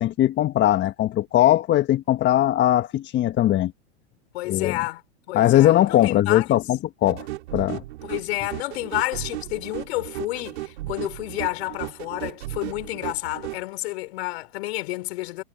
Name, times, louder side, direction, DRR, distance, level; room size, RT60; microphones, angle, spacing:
voice 1, 0.0-3.7 4.4-4.8 5.3-7.3 7.5-7.8, left 13 dB, 30° left, 1.4 m, -20 dB
voice 2, 4.3-5.0 5.3-6.6 8.0-15.4, left 19 dB, 60° left, 4.3 m, -30 dB
sound 1, 7.1-13.6, right 17 dB, 65° right, 2.7 m, -35 dB
hypercardioid pair, 105°, 35 cm